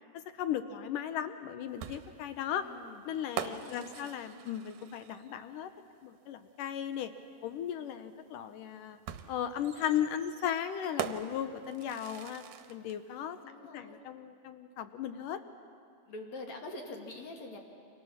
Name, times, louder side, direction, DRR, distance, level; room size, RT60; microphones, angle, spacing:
voice 1, 0.4-2.7 3.0-5.7 6.0-7.1 7.4-9.0 9.3-12.4 12.7-13.4 13.7-15.4, left 9 dB, 75° left, 10 dB, 2.1 m, -36 dB
sound 1, 1.8-5.5 6.9-7.0 9.1-13.0, right 9 dB, 70° right, 2.2 m, -43 dB
voice 2, 2.5-3.1 3.5-4.2 13.4-14.0 16.1-17.6, left 2 dB, 50° left, 2 dB, 2.9 m, -45 dB
30.0 x 25.0 x 7.3 m, 2.3 s
omnidirectional pair, 4.5 m